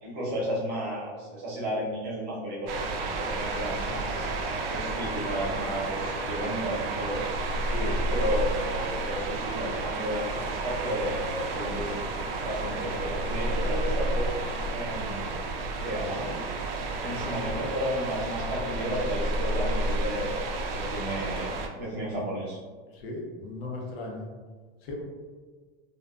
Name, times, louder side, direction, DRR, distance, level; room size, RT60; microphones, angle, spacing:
voice 1, 0.0-2.9 3.2-4.3 4.7-7.3 8.1-12.1 12.4-14.3 14.7-15.3 15.8-16.4 17.0-22.6, equal, 35° right, -6 dB, 0.8 m, -33 dB
sound 1, 2.7-21.7, right 3 dB, 75° right, 0.5 m, -33 dB
sound 2, 5.7-6.8 7.1-12.5 12.8-18.3 18.6-21.0, equal, 55° left, 0.6 m, -34 dB
voice 2, 7.7-8.1 22.9-24.3 24.8-25.0, left 1 dB, 85° left, -1 dB, 0.8 m, -36 dB
2.4 x 2.1 x 2.4 m, 1.5 s
supercardioid pair, 150°, 29 cm